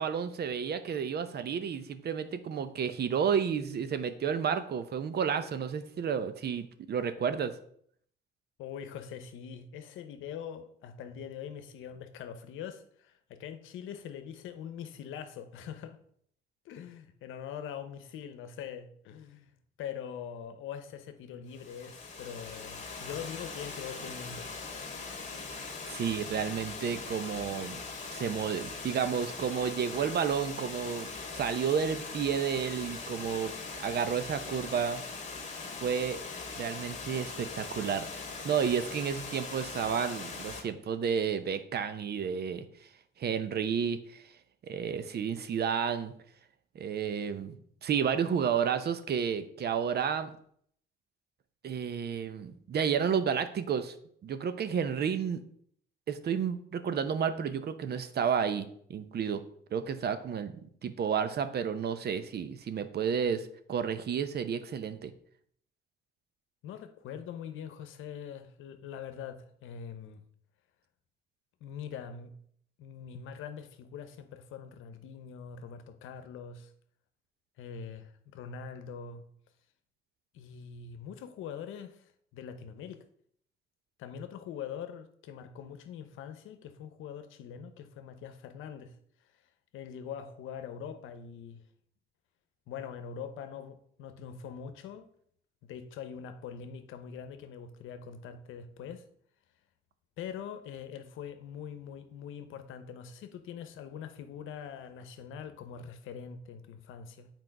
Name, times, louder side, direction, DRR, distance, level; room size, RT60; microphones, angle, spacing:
voice 1, 0.0-7.5 25.5-27.8 28.1-35.0 35.8-36.2 36.6-38.1 38.4-42.6 43.2-44.2 44.6-46.1 46.7-50.3 51.6-53.9 54.2-55.4 56.1-59.4 59.7-60.6 60.8-65.1, right 7 dB, 55° right, 0.8 m, -31 dB
voice 2, 8.6-16.0 16.6-24.5 66.6-70.2 71.6-72.3 72.8-76.7 77.6-79.2 80.3-83.0 84.0-88.9 89.7-91.6 92.7-95.1 95.6-99.0 100.2-107.3, left 8 dB, 85° left, 0.8 m, -43 dB
Water, 21.5-40.6, left 4 dB, 35° left, 1.7 m, -41 dB
7.8 x 4.6 x 4.6 m
cardioid pair, 90°, 20 cm